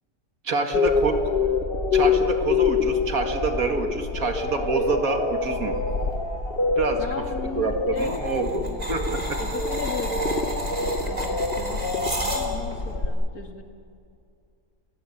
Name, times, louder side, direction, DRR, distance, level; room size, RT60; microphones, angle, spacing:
voice 1, 0.4-1.3 1.9-5.8 6.8-7.0 7.5-9.4, right 3 dB, 60° right, 5 dB, 2.3 m, -27 dB
sound 1, 0.7-13.1, left 4 dB, 35° left, 1.8 m, -26 dB
sound 2, 4.0-13.0, equal, 20° left, 4.5 m, -47 dB
voice 2, 7.0-8.9 9.4-13.6, left 5 dB, 65° left, 4 dB, 2.5 m, -37 dB
sound 3, 8.0-12.8, right 1 dB, 25° right, 3.3 m, -32 dB
30.0 x 15.0 x 9.9 m, 2.4 s
omnidirectional pair, 1.7 m